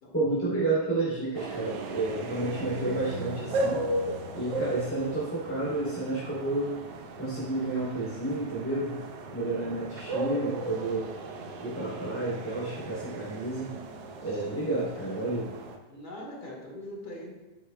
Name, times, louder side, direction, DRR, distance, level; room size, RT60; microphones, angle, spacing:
voice 1, 0.1-3.8 4.3-6.7 7.2-8.9 9.3-11.1 11.6-13.8 14.2-15.5, right 2 dB, 5° left, -10 dB, 2.9 m, -30 dB
sound 1, 1.3-15.8, right 2 dB, 65° right, 1.6 m, -36 dB
voice 2, 9.4-9.8 15.9-17.4, left 1 dB, 35° left, -1 dB, 2.2 m, -42 dB
11.5 x 9.4 x 2.3 m, 1.2 s
omnidirectional pair, 3.3 m